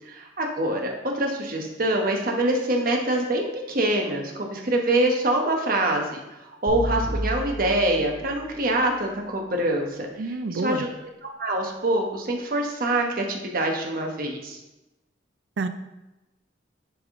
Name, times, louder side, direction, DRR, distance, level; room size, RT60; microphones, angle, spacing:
voice 1, 0.1-0.9 1.1-6.2 6.6-10.9 11.4-14.6, right 1 dB, 50° right, 1 dB, 1.0 m, -25 dB
sound 1, 6.7-8.9, equal, 75° left, 2.2 m, -32 dB
voice 2, 10.2-10.8 15.6-15.7, right 3 dB, 75° right, 10 dB, 0.5 m, -28 dB
10.0 x 3.6 x 3.6 m, 0.99 s
head